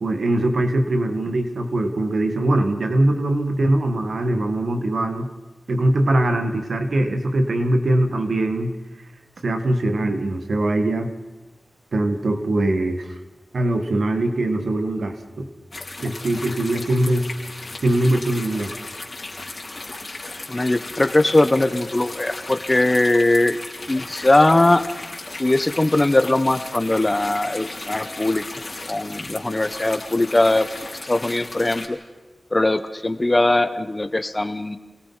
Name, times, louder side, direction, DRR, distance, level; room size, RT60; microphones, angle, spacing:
voice 1, 0.0-5.3 5.7-8.7 9.4-11.1 11.9-13.1 13.5-15.5 16.0-17.3 17.8-18.7, right 1 dB, 80° right, 6 dB, 1.8 m, -21 dB
sound 1, 15.7-31.9, left 2 dB, 45° left, 3.9 m, -36 dB
voice 2, 20.5-23.6 23.9-24.8 25.4-28.4 28.9-30.7 31.0-32.0 32.5-34.8, left 2 dB, 30° left, 10 dB, 1.3 m, -20 dB
27.5 x 18.0 x 5.8 m, 1.1 s
wide cardioid pair, 60°, 0 cm